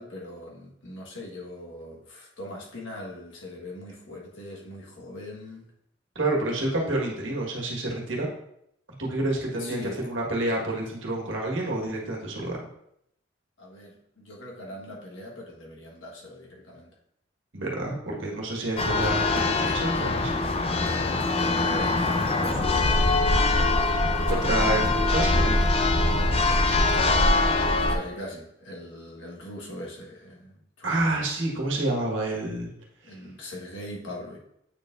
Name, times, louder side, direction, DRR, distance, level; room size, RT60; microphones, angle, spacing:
voice 1, 0.0-5.7 9.6-10.1 13.6-16.9 18.6-18.7 21.5-23.4 27.9-31.3 33.0-34.4, left 1 dB, 85° left, -2 dB, 1.4 m, -40 dB
voice 2, 6.1-8.3 9.0-12.6 17.5-20.3 24.3-25.6 30.8-32.7 33.0-33.1, right 2 dB, 85° right, -1 dB, 1.5 m, -28 dB
Church bell, 18.8-28.0, left 2 dB, 30° left, 0.5 m, -23 dB
8.4 x 4.5 x 2.5 m, 0.74 s
head